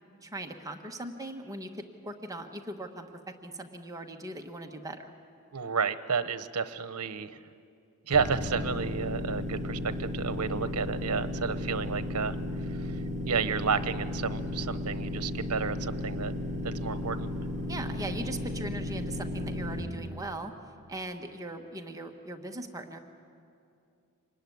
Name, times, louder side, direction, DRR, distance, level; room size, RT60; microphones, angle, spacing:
voice 1, 0.2-3.1 3.4-5.1 17.7-20.5 20.9-23.0, right 1 dB, 15° right, 4 dB, 1.2 m, -39 dB
voice 2, 5.5-7.4 8.1-12.4 12.8-13.0 13.3-16.3 16.6-17.3, right 5 dB, 80° right, 12 dB, 0.9 m, -31 dB
sound 1, 8.1-19.8, left 1 dB, 40° right, 5.4 m, -34 dB
25.5 x 20.5 x 9.4 m, 2.5 s
head